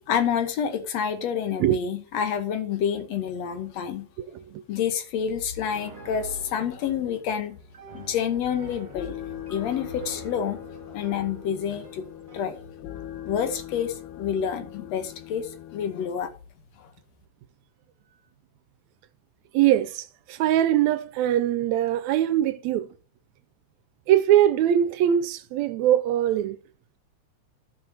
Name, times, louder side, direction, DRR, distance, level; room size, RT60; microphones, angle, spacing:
voice 1, 0.1-4.1 4.7-7.6 7.9-9.2 9.5-10.6 10.9-12.1 12.3-12.6 13.3-16.3 16.8-16.9, left 8 dB, 70° left, 2.0 m, -28 dB
Piano, 5.7-12.6, right 3 dB, 20° right, 1.7 m, -47 dB
sound 1, 8.7-16.1, left 12 dB, 90° left, 2.1 m, -41 dB
voice 2, 19.5-22.9 24.1-26.6, right 11 dB, 80° right, 1.7 m, -22 dB
15.0 x 5.6 x 2.8 m
omnidirectional pair, 3.4 m